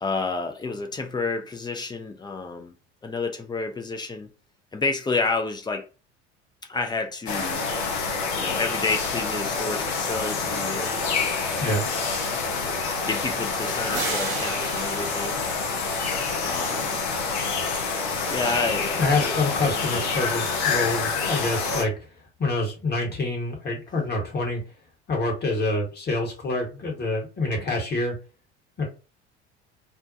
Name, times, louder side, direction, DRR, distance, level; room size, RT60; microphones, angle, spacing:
voice 1, 0.0-2.7 3.0-4.3 4.7-5.8 6.7-7.6 8.4-11.4 13.0-15.4 16.4-17.0 18.3-19.4, left 3 dB, 15° left, 0.4 m, -30 dB
sound 1, 7.3-21.8, left 4 dB, 65° left, 0.7 m, -27 dB
sound 2, 13.9-16.6, right 6 dB, 65° right, 0.8 m, -36 dB
voice 2, 19.0-21.9 22.4-24.6 25.1-28.2 28.8-28.9, left 2 dB, 30° left, 1.3 m, -26 dB
2.5 x 2.2 x 2.6 m
figure-of-eight pair, 65°, 34 cm